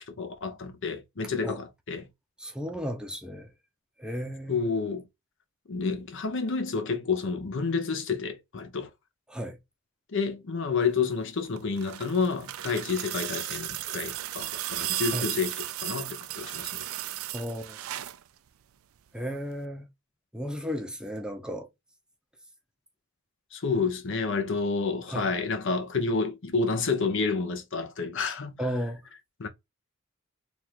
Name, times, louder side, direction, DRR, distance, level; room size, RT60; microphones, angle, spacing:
voice 1, 0.1-2.1 4.5-5.0 5.7-8.9 10.1-16.8 23.5-28.6 29.4-29.5, left 4 dB, 65° left, 0.7 m, -29 dB
voice 2, 2.4-3.5 4.0-4.7 9.3-9.6 15.1-15.3 17.3-17.8 19.1-19.8 20.3-21.7 25.1-25.3 28.6-29.0, equal, 5° right, 0.6 m, -34 dB
sound 1, 11.4-18.2 19.5-19.6, right 14 dB, 85° right, 0.4 m, -35 dB
3.6 x 2.4 x 4.4 m
head